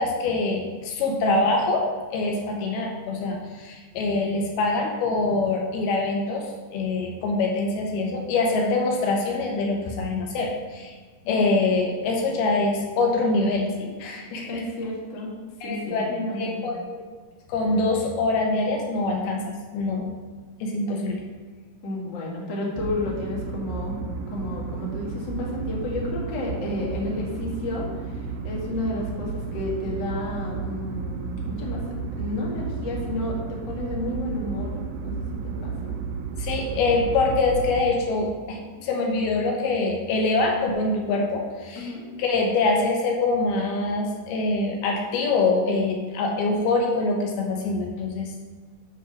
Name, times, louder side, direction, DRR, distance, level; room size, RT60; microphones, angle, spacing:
voice 1, 0.0-1.8 2.1-6.4 6.7-10.9 11.3-14.6 15.6-17.0 17.5-20.1 20.6-21.2 36.4-41.9 42.2-48.4, left 3 dB, 75° left, 0 dB, 2.8 m, -24 dB
voice 2, 14.5-15.3 15.6-16.6 21.8-24.0 24.3-31.8 32.2-36.0 41.7-42.0, left 1 dB, 50° left, -3 dB, 1.4 m, -31 dB
sound 1, 22.7-37.8, right 5 dB, 85° right, 2.6 m, -32 dB
9.7 x 4.3 x 6.0 m, 1.4 s
omnidirectional pair, 4.7 m